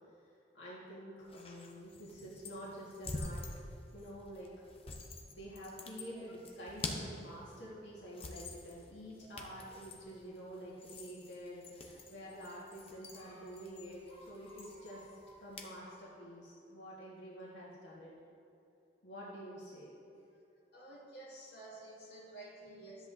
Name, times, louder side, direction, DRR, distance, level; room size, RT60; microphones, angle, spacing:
voice 1, 0.5-3.4 3.9-4.5 5.3-18.1 19.0-19.9, equal, 90° left, -7 dB, 1.8 m, -48 dB
sound 1, 1.2-15.8, left 2 dB, 35° left, 0.8 m, -48 dB
voice 2, 20.7-23.1, right 2 dB, 65° left, -6 dB, 2.3 m, -51 dB
13.0 x 8.1 x 2.7 m, 2.7 s
head